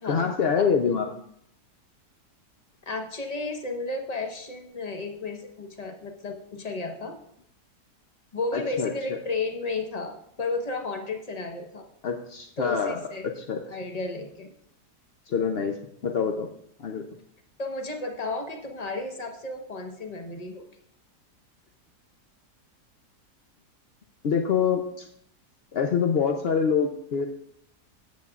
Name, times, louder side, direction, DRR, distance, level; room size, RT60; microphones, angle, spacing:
voice 1, 0.0-1.1 8.5-9.2 12.0-13.0 13.2-13.6 15.3-15.8 16.0-16.5 16.8-17.0 24.2-25.1 25.7-27.3, left 6 dB, 65° left, 3 dB, 0.6 m, -25 dB
voice 2, 2.9-7.2 8.3-11.9 12.6-13.3 13.7-14.5 17.6-20.6, left 3 dB, 30° left, 3 dB, 1.0 m, -33 dB
14.0 x 8.3 x 2.4 m, 0.71 s
omnidirectional pair, 1.8 m